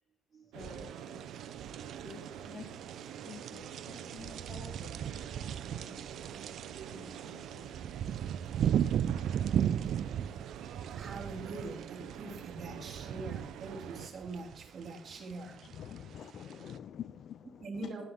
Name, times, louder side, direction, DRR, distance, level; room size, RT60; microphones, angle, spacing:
voice 1, 0.5-1.2 2.0-2.9 3.2-6.4 6.9-7.7, left 3 dB, 45° left, 2 dB, 1.8 m, -51 dB
sound 1, 0.5-14.1, right 9 dB, 90° right, 0.8 m, -46 dB
sound 2, 0.6-16.8, right 9 dB, 70° right, 0.4 m, -37 dB
voice 2, 10.0-15.7 17.6-18.1, right 3 dB, 45° right, -1 dB, 2.6 m, -44 dB
voice 3, 15.5-17.9, left 9 dB, 65° left, 16 dB, 0.3 m, -46 dB
11.0 x 7.6 x 3.7 m, 0.74 s
cardioid pair, 90°, 0 cm